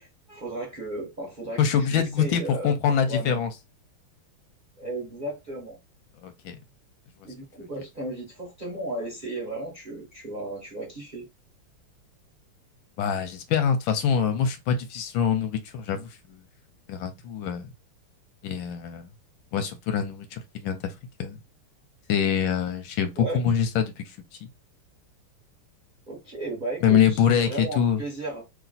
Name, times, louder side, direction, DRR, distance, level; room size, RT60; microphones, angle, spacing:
voice 1, 0.0-3.4 4.8-5.8 7.2-11.3 23.2-23.4 26.1-28.4, right 2 dB, 30° right, 1.0 m, -35 dB
voice 2, 1.6-3.5 6.2-6.6 13.0-16.4 16.9-17.7 18.4-19.1 19.5-20.9 21.2-21.4 22.1-24.1 26.8-28.0, left 7 dB, 75° left, 1.2 m, -24 dB
3.2 x 2.8 x 4.0 m
omnidirectional pair, 2.4 m